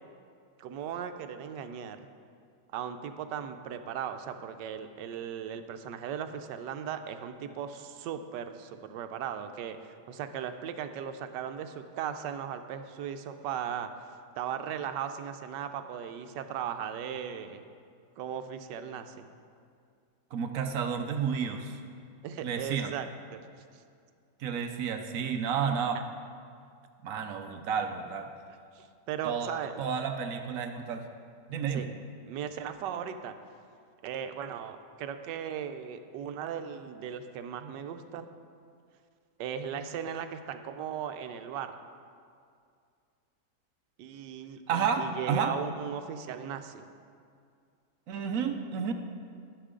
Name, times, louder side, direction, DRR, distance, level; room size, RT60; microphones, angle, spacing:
voice 1, 0.6-2.0 2.7-13.9 14.4-17.7 18.2-19.3 22.2-23.4 28.7-29.8 31.7-31.8 32.3-33.4 34.0-38.3 39.4-41.8 44.0-46.8, right 8 dB, 80° right, 8 dB, 1.2 m, -37 dB
voice 2, 20.3-21.8 22.4-22.9 24.4-26.0 27.0-28.3 29.2-29.5 29.8-31.0 31.5-31.9 44.7-45.5 48.1-48.9, right 7 dB, 65° right, 6 dB, 0.9 m, -31 dB
11.0 x 10.0 x 3.7 m, 2.3 s
omnidirectional pair, 1.9 m